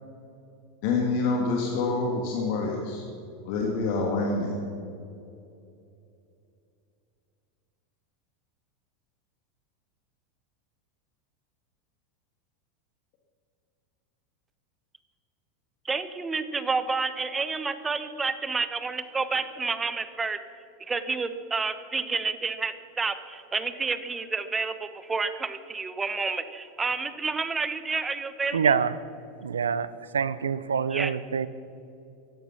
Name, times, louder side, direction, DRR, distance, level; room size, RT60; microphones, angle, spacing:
voice 1, 0.8-3.0 3.5-4.5, left 3 dB, 55° left, 0 dB, 2.0 m, -26 dB
voice 2, 15.8-20.4 20.9-28.8 30.9-31.1, right 4 dB, 20° right, 11 dB, 1.0 m, -30 dB
voice 3, 28.5-29.0 29.4-29.9 30.1-31.5, right 7 dB, 80° right, 16 dB, 0.5 m, -25 dB
16.5 x 11.5 x 5.9 m, 2.7 s
figure-of-eight pair, 85°, 0 cm